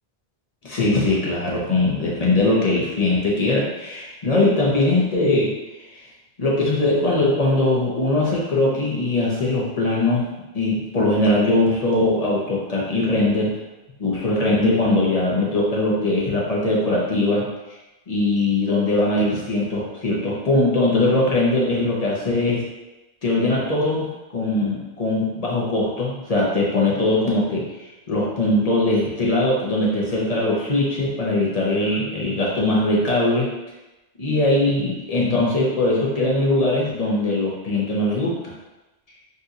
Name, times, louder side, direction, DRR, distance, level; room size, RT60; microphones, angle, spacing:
voice 1, 0.6-5.5 6.4-13.6 14.0-17.4 18.1-22.6 23.2-24.1 24.3-27.6 28.1-33.5 34.2-38.5, left 2 dB, 40° left, -5 dB, 0.8 m, -21 dB
4.1 x 2.7 x 2.5 m, 1.0 s
omnidirectional pair, 1.1 m